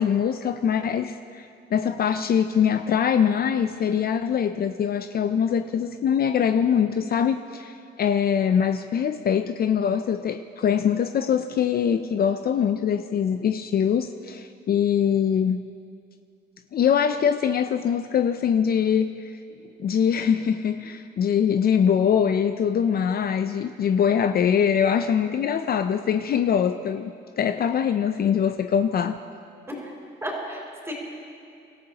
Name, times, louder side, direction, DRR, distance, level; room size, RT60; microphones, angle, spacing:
voice 1, 0.0-1.5 1.7-15.7 16.7-19.2 19.8-29.2, left 8 dB, 50° left, 9 dB, 0.5 m, -23 dB
voice 2, 30.2-30.9, equal, 15° right, -3 dB, 3.8 m, -33 dB
25.5 x 13.5 x 2.9 m, 2.5 s
cardioid pair, 90°, 20 cm